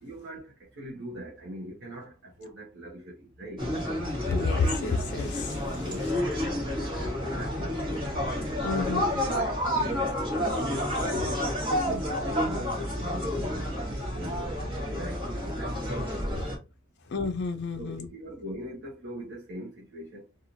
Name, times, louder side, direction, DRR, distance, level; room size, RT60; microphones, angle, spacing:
voice 1, 0.0-3.7 5.8-8.2 8.7-11.5 11.8-13.7 14.1-14.6 14.9-16.7 17.8-20.3, equal, 60° right, 0.9 m, -41 dB
sound 1, 3.6-16.6, equal, 25° right, 1.3 m, -30 dB
voice 2, 4.3-5.8 8.6-9.0 17.1-18.1, left 4 dB, 55° left, 0.4 m, -29 dB
2.9 x 2.4 x 2.6 m
head